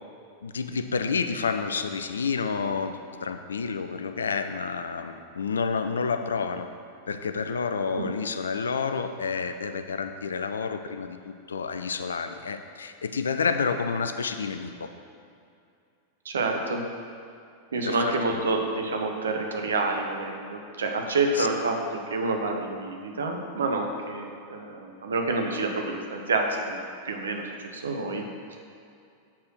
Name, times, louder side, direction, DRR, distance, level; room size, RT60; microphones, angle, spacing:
voice 1, 0.4-6.7 7.1-14.9 17.8-18.4 21.3-21.5, left 5 dB, 70° left, 8 dB, 0.4 m, -29 dB
voice 2, 16.2-16.8 17.7-28.2, right 3 dB, 70° right, 2 dB, 0.9 m, -28 dB
7.3 x 4.4 x 6.2 m, 2.5 s
figure-of-eight pair, 90°, 0 cm